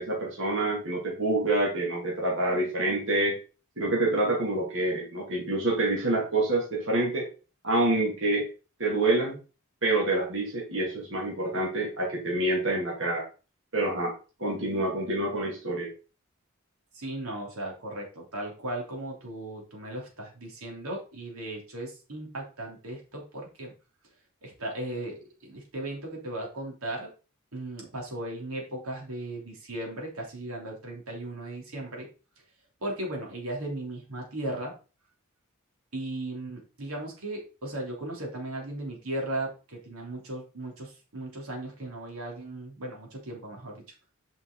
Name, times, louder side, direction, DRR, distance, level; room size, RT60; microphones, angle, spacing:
voice 1, 0.0-3.4 3.8-7.3 7.6-8.5 8.8-9.4 9.8-13.2 13.7-14.1 14.4-15.9, right 2 dB, 60° right, -3 dB, 2.6 m, -27 dB
voice 2, 16.9-23.7 24.4-27.1 27.5-32.1 32.8-34.7 35.9-43.8, right 1 dB, 90° right, -1 dB, 3.1 m, -36 dB
9.0 x 5.5 x 4.0 m, 0.34 s
head